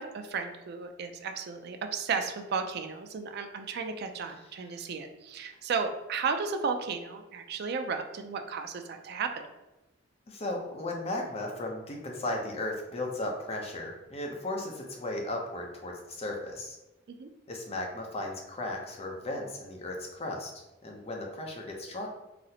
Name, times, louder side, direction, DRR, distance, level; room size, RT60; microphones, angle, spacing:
voice 1, 0.0-9.3 17.1-17.3, right 5 dB, 55° right, 6 dB, 0.4 m, -34 dB
voice 2, 10.3-16.8 17.5-22.1, left 1 dB, 35° left, 1 dB, 0.6 m, -36 dB
4.0 x 2.0 x 2.7 m, 1.0 s
head